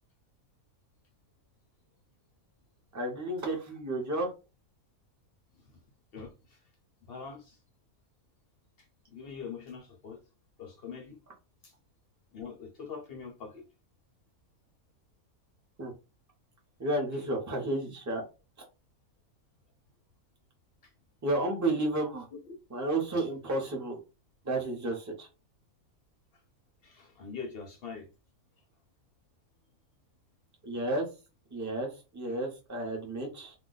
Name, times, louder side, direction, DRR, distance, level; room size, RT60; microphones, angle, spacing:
voice 1, 2.9-4.3 15.8-15.9 16.8-18.2 21.2-22.3 22.7-24.0 24.4-25.3 30.6-31.1 31.5-33.5, right 2 dB, 15° right, 0.6 m, -32 dB
voice 2, 6.1-6.7 7.1-7.6 8.8-10.2 10.6-11.2 11.6-11.8 12.3-13.7 17.1-17.2 20.8-20.9 22.5-22.6 23.2-23.3 26.8-28.1 28.6-28.7 32.3-32.4, left 5 dB, 55° left, 0.7 m, -44 dB
2.4 x 2.2 x 3.8 m
omnidirectional pair, 1.5 m